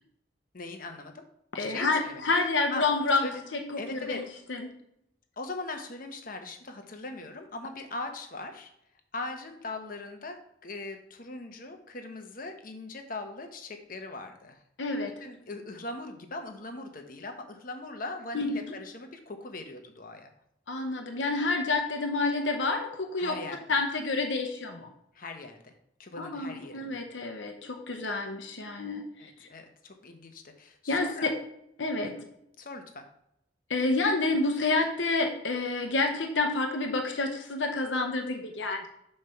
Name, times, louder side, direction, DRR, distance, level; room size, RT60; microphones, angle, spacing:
voice 1, 0.5-1.2 1.6-2.9 3.2-3.4 3.8-4.2 5.4-8.7 9.1-14.6 15.2-20.3 23.2-23.6 25.1-25.7 26.0-27.0 29.2-31.3 32.0-32.1 32.6-33.1, left 2 dB, 50° left, 5 dB, 1.0 m, -40 dB
voice 2, 1.5-3.6 3.9-4.6 14.8-15.1 18.3-18.5 20.7-23.4 23.7-24.8 26.2-29.3 30.9-31.3 31.8-32.1 33.7-38.9, left 3 dB, 80° left, 3 dB, 0.9 m, -29 dB
7.4 x 3.4 x 5.7 m, 0.77 s
head